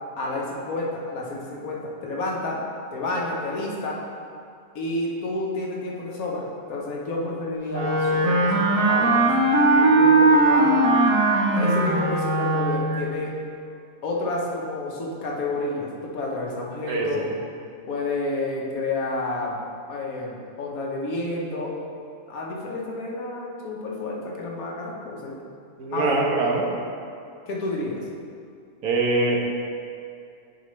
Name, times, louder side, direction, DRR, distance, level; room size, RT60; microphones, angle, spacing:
voice 1, 0.2-2.6 2.9-4.0 4.7-9.3 9.8-10.9 11.5-13.4 14.0-17.3 17.9-19.6 19.9-21.8 22.3-25.4 25.9-26.2 27.5-28.0, left 2 dB, 85° left, -3 dB, 1.5 m, -30 dB
Wind instrument woodwind instrument, 7.7-13.0, right 2 dB, 75° right, 1.2 m, -19 dB
voice 2, 25.8-26.7 28.8-29.4, right 3 dB, 90° right, -1 dB, 1.4 m, -23 dB
8.7 x 5.2 x 3.2 m, 2.4 s
omnidirectional pair, 1.5 m